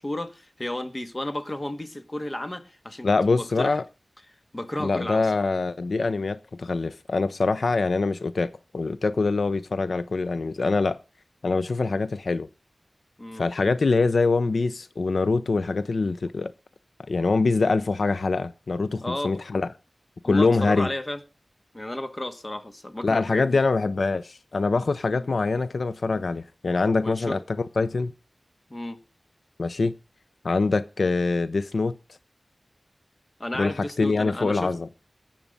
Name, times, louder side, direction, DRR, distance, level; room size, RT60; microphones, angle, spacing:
voice 1, 0.0-3.1 3.4-3.8 4.5-5.3 13.2-13.4 19.0-19.4 20.2-21.2 21.7-23.6 25.1-25.3 27.0-27.4 28.7-29.0 33.4-34.7, left 1 dB, 30° left, 1.6 m, -33 dB
voice 2, 3.0-3.8 4.8-11.0 11.4-12.5 13.4-16.5 17.1-19.7 20.2-20.9 23.0-28.1 29.6-29.9 30.4-31.9 33.6-33.7 34.0-34.9, left 3 dB, 85° left, 0.5 m, -24 dB
18.0 x 7.4 x 5.2 m
wide cardioid pair, 70°, 0 cm